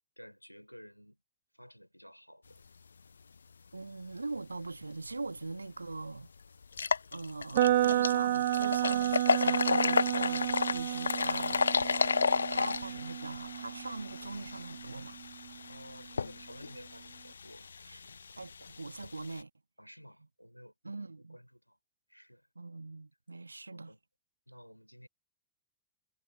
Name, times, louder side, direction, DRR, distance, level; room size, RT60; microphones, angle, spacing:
voice 1, 0.2-1.2 1.5-2.6 15.7-18.1 19.8-21.8 22.1-22.5 23.7-24.0 24.5-25.1, equal, 90° left, 4.5 m, -54 dB
voice 2, 3.7-6.3 7.1-11.6 12.5-15.2 18.4-19.5 20.8-21.4 22.6-23.9, right 3 dB, 80° right, 1.8 m, -42 dB
sound 1, 5.4-5.5 5.9-6.0 6.6-19.4, left 5 dB, 75° left, 0.5 m, -33 dB
sound 2, 7.5-15.5, right 14 dB, 55° right, 1.6 m, -32 dB
figure-of-eight pair, 90°, 0 cm